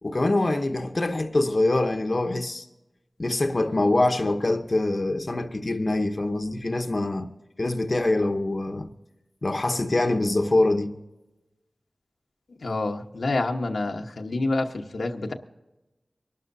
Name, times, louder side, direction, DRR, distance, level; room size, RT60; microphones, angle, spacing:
voice 1, 0.0-2.6 3.2-7.3 7.6-8.9 9.4-10.9, left 2 dB, 45° left, 0.9 m, -24 dB
voice 2, 12.6-15.3, left 2 dB, 90° left, 1.1 m, -27 dB
24.5 x 12.0 x 2.7 m
wide cardioid pair, 75°, 0 cm